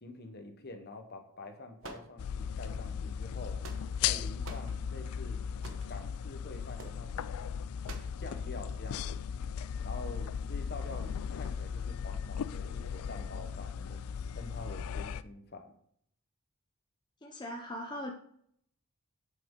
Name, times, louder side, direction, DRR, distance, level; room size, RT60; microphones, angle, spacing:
voice 1, 0.0-3.7 4.0-5.4 5.9-7.4 8.2-9.3 9.8-15.7, left 2 dB, 45° left, 6 dB, 1.0 m, -46 dB
sound 1, 1.8-2.6 3.3-4.1 4.4-4.7 5.6-5.9 6.8-7.0 7.8-8.2, right 3 dB, 60° right, 1.0 m, -47 dB
sound 2, 2.2-15.2, left 7 dB, 75° left, 0.3 m, -37 dB
voice 2, 17.2-18.1, equal, 20° left, 1 dB, 0.6 m, -40 dB
7.7 x 6.0 x 3.7 m, 0.66 s
head